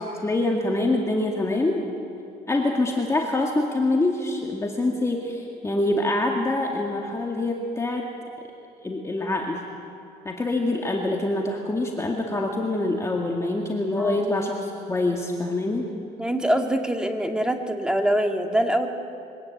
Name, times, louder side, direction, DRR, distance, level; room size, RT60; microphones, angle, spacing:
voice 1, 0.0-1.8 2.5-8.1 8.8-9.6 10.3-15.9, left 2 dB, 15° left, 0 dB, 2.0 m, -25 dB
voice 2, 14.0-14.4 16.2-18.9, right 1 dB, 5° right, 4 dB, 1.9 m, -24 dB
23.0 x 18.5 x 8.4 m, 2.6 s
cardioid pair, 110°, 17 cm